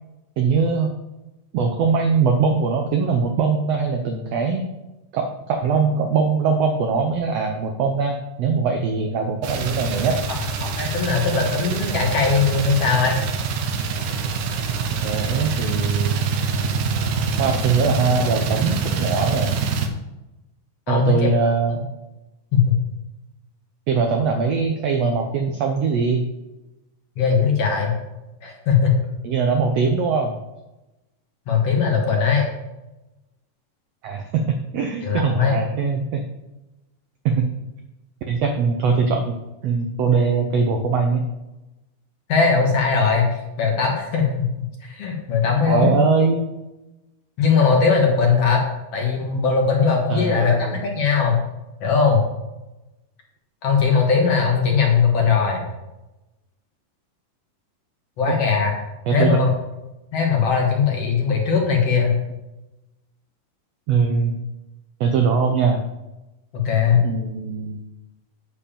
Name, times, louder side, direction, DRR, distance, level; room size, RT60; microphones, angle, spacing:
voice 1, 0.4-0.9 1.5-4.7 5.1-10.2 15.0-16.2 17.4-19.6 20.9-21.8 23.9-26.2 29.2-30.4 34.0-36.3 37.2-37.5 38.3-39.4 39.6-41.3 45.7-46.4 50.1-50.8 58.3-58.4 59.1-59.4 63.9-64.4 65.0-65.8 67.0-67.8, right 5 dB, 90° right, 4 dB, 1.4 m, -21 dB
sound 1, 9.4-19.9, right 4 dB, 70° right, 2.1 m, -25 dB
voice 2, 10.6-13.2 20.9-21.3 22.5-22.8 27.2-27.9 28.4-29.0 31.5-32.5 35.0-35.6 42.3-44.5 44.9-46.0 47.4-48.6 48.9-51.4 51.8-52.3 53.6-55.6 58.2-58.7 59.1-59.5 60.1-62.2 66.5-67.0, left 5 dB, 55° left, 0 dB, 2.1 m, -19 dB
8.6 x 4.7 x 7.3 m, 0.99 s
omnidirectional pair, 3.9 m